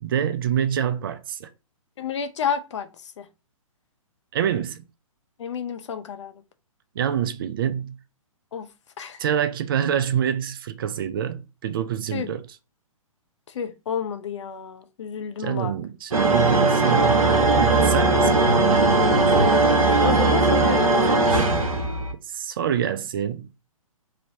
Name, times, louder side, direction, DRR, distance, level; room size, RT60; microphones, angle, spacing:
voice 1, 0.0-1.5 4.3-4.8 7.0-8.0 9.2-12.4 15.4-18.6 22.3-23.5, right 9 dB, 40° right, 0.4 m, -26 dB
voice 2, 2.0-3.3 5.4-6.4 8.5-8.7 9.0-9.2 12.1-12.3 13.5-15.8 19.4-21.7, left 7 dB, 55° left, 0.5 m, -30 dB
sound 1, 16.1-22.1, right 3 dB, 70° right, 0.9 m, -19 dB
3.1 x 2.7 x 2.7 m
figure-of-eight pair, 125°, 18 cm